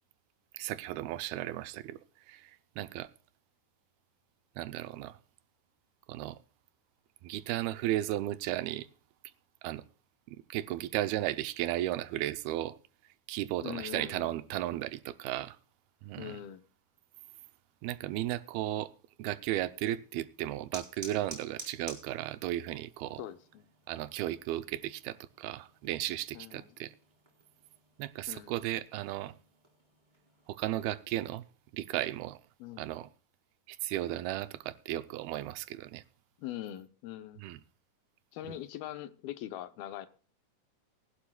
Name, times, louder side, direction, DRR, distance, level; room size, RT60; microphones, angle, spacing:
voice 1, 0.5-2.0 2.3-3.1 4.6-5.2 6.1-6.4 7.2-8.9 9.6-9.8 10.3-12.8 13.3-15.6 16.0-16.4 17.8-18.9 19.2-23.2 23.9-26.9 28.0-29.3 30.5-31.4 31.7-32.4 32.8-33.1 33.7-36.0 37.4-37.6 38.5-38.6, right 14 dB, 85° right, 2.6 m, -35 dB
voice 2, 13.6-14.4 16.2-16.6 23.2-23.7 26.3-26.7 28.3-28.5 32.6-32.9 36.4-37.4 38.3-40.1, left 12 dB, 80° left, 2.6 m, -42 dB
sound 1, 19.7-30.8, right 2 dB, 10° right, 3.3 m, -53 dB
20.5 x 11.5 x 2.3 m
omnidirectional pair, 4.3 m